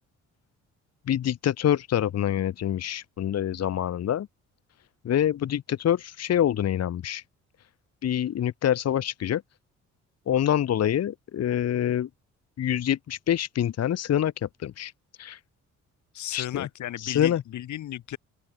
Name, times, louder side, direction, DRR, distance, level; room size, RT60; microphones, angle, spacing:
voice 1, 1.1-4.3 5.0-7.2 8.0-9.4 10.3-12.1 12.6-14.9 15.2-15.4 16.3-16.7 17.0-17.4, left 10 dB, 55° left, 1.2 m, -26 dB
voice 2, 16.1-18.2, left 12 dB, 70° left, 2.0 m, -35 dB
open air
cardioid pair, 90°, 30 cm